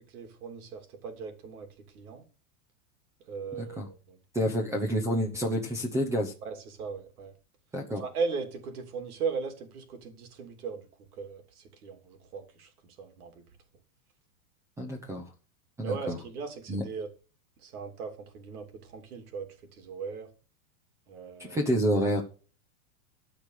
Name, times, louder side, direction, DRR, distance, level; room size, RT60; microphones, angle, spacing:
voice 1, 0.1-1.7 1.9-2.2 3.3-4.2 6.4-7.3 8.0-10.9 11.2-13.4 15.8-17.1 17.6-20.3 21.1-21.7, right 5 dB, 75° right, 6 dB, 3.0 m, -38 dB
voice 2, 3.5-3.9 4.3-6.3 7.7-8.0 14.8-15.2 15.8-16.2 16.7-16.8 21.4-22.2, equal, 5° right, 3 dB, 0.8 m, -28 dB
13.5 x 5.1 x 6.6 m, 0.36 s
supercardioid pair, 170°, 44 cm